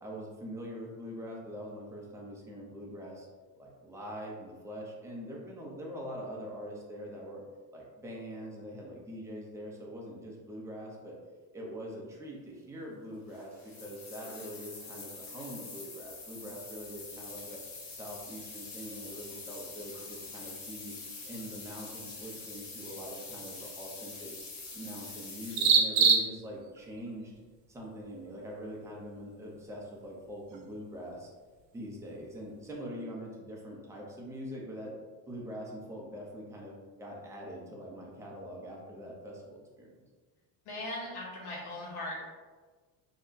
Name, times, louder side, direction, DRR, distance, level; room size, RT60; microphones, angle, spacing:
voice 1, 0.0-3.3 3.6-7.4 7.7-11.2 11.5-17.6 17.9-20.9 21.2-24.3 24.7-27.3 27.7-31.3 31.7-34.9 35.3-39.9, equal, 5° right, -3 dB, 0.5 m, -43 dB
sound 1, 13.3-25.7, left 3 dB, 40° left, 0.8 m, -45 dB
sound 2, 16.0-32.8, right 5 dB, 80° right, 0.7 m, -36 dB
voice 2, 40.6-42.3, left 1 dB, 75° left, -4 dB, 1.3 m, -39 dB
2.6 x 2.2 x 3.7 m, 1.4 s
cardioid pair, 130°, 42 cm